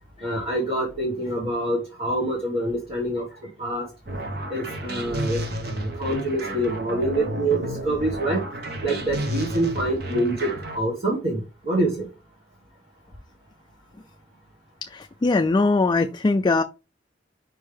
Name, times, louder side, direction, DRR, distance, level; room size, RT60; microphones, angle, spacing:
voice 1, 0.2-3.2 3.6-3.9 4.5-8.4 8.8-12.1, right 1 dB, 35° right, 1.5 m, -26 dB
sound 1, 4.1-10.8, right 1 dB, 60° right, 1.2 m, -31 dB
voice 2, 14.8-16.6, left 3 dB, 25° left, 0.3 m, -21 dB
5.4 x 5.4 x 3.4 m
head